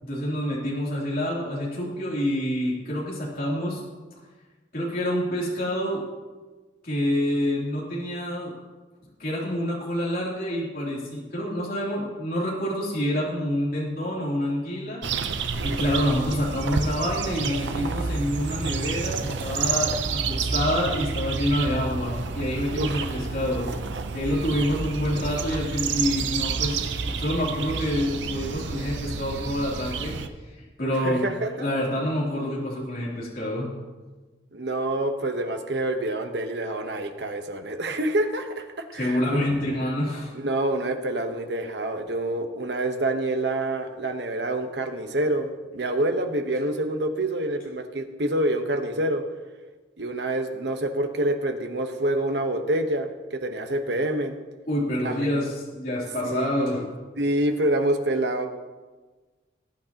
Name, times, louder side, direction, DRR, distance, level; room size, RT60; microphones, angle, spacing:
voice 1, 0.0-3.8 4.7-6.0 6.8-8.5 9.2-15.0 15.6-30.1 30.8-31.2 31.6-33.7 38.9-40.3 54.7-56.8, equal, 50° left, -5 dB, 3.1 m, -27 dB
sound 1, 15.0-30.3, right 5 dB, 90° right, 0.7 m, -29 dB
voice 2, 22.8-23.1 30.9-31.7 34.5-39.4 40.3-49.2 50.0-54.4 55.0-55.3 56.2-56.5 56.7-56.8 57.2-58.5, right 1 dB, 75° right, 6 dB, 1.1 m, -27 dB
19.5 x 9.5 x 2.9 m, 1.3 s
head